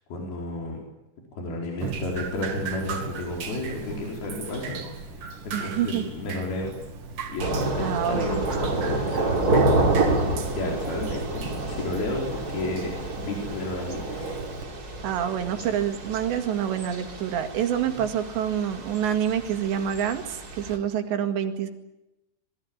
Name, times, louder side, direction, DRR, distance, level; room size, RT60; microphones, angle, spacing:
voice 1, 0.1-0.8 1.3-6.8 7.3-8.4 8.7-9.6 10.5-14.4 17.9-18.0, left 2 dB, 60° left, -1 dB, 6.3 m, -32 dB
Drip, 1.8-14.6, right 5 dB, 50° right, 3.6 m, -38 dB
voice 2, 5.5-6.0 7.8-8.4 15.0-21.7, right 9 dB, 75° right, 7 dB, 4.2 m, -27 dB
Thunder / Rain, 7.4-20.8, right 2 dB, 25° right, 3.2 m, -28 dB
27.0 x 21.5 x 8.8 m, 0.93 s
omnidirectional pair, 5.1 m